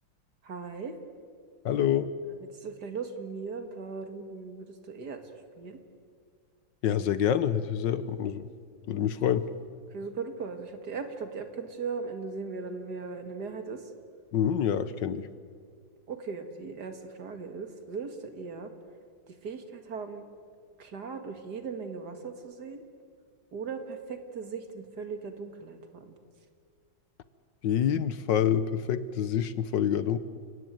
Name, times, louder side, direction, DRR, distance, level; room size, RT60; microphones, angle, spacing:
voice 1, 0.4-1.0 2.6-5.2 5.6-5.8 9.9-13.8 15.1-15.2 16.1-18.7 19.4-20.2 20.8-22.8 23.5-26.1, right 5 dB, 55° right, 7 dB, 2.4 m, -38 dB
voice 2, 1.6-2.1 6.8-8.5 8.9-9.5 14.3-15.3 27.6-30.2, left 9 dB, 65° left, 13 dB, 1.5 m, -27 dB
30.0 x 17.5 x 9.2 m, 2.1 s
omnidirectional pair, 2.2 m